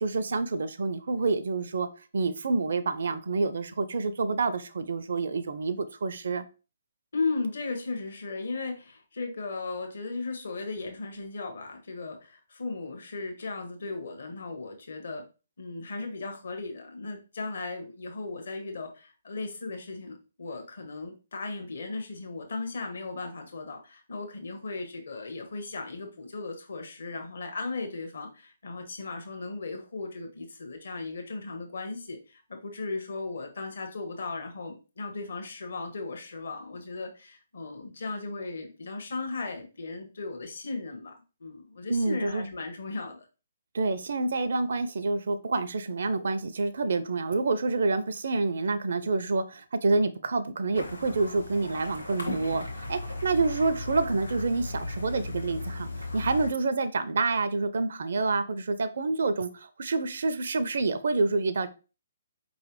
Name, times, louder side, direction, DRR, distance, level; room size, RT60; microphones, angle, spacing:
voice 1, 0.0-1.9 2.1-6.4 41.9-42.5 43.7-55.9 56.1-61.7, right 3 dB, 60° right, 0.4 m, -28 dB
voice 2, 7.1-15.2 15.6-41.1 41.4-43.3, left 3 dB, 60° left, 1.1 m, -36 dB
sound 1, 50.7-56.5, left 2 dB, 85° left, 1.4 m, -36 dB
4.9 x 3.1 x 3.0 m
figure-of-eight pair, 130°, 0 cm